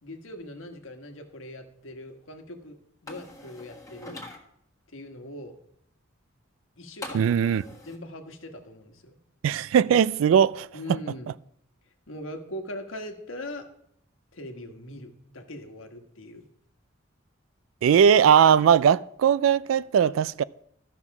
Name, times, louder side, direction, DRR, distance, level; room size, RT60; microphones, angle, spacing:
voice 1, 0.0-2.8 3.0-4.2 4.9-5.5 6.8-7.3 7.8-9.2 10.7-11.3 12.1-13.7 14.3-16.5, left 1 dB, 85° left, 1.3 m, -40 dB
sound 1, 3.1-4.4 7.0-8.0, left 2 dB, 15° left, 1.5 m, -42 dB
voice 2, 7.1-7.6 9.4-10.7 17.8-20.4, right 8 dB, 85° right, 0.3 m, -19 dB
13.0 x 5.9 x 5.9 m
head